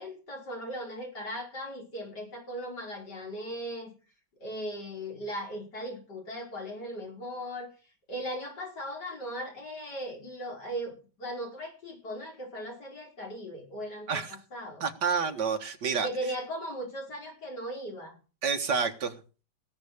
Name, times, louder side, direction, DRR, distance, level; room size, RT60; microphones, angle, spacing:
voice 1, 0.0-3.9 4.4-7.7 8.1-14.9 16.0-18.2, equal, 65° left, 1 dB, 5.4 m, -38 dB
voice 2, 14.8-16.1 18.4-19.1, right 5 dB, 65° right, 5 dB, 2.2 m, -29 dB
19.0 x 7.1 x 6.6 m, 0.35 s
omnidirectional pair, 2.0 m